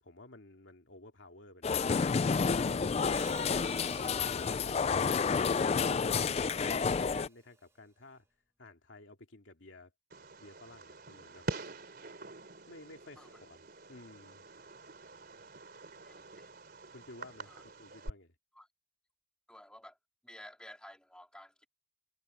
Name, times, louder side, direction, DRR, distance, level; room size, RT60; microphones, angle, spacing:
voice 1, 0.0-2.2 4.3-5.0 5.3-8.2 8.6-9.9 10.4-11.4 12.7-13.6 13.9-14.4 16.9-18.3, left 2 dB, 75° left, 2.5 m, -54 dB
sound 1, 1.6-7.3, left 5 dB, 30° left, 0.3 m, -30 dB
Hi-hat, 3.1-7.3, right 2 dB, 15° right, 1.1 m, -51 dB
Fireworks, 10.1-18.1, right 2 dB, 50° right, 3.7 m, -46 dB
voice 2, 16.0-16.5 17.5-17.6 18.5-18.7 19.5-20.0 20.2-21.7, left 1 dB, 5° left, 2.8 m, -53 dB
head